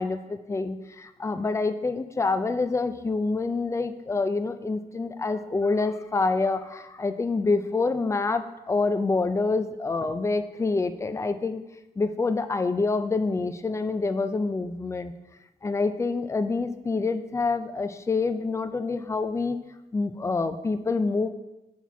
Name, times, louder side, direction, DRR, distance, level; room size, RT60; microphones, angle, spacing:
voice 1, 0.0-11.6 12.0-15.1 15.6-19.6 19.9-21.3, left 3 dB, 20° left, 10 dB, 0.3 m, -27 dB
6.1 x 4.1 x 4.6 m, 0.99 s
wide cardioid pair, 140°, 16 cm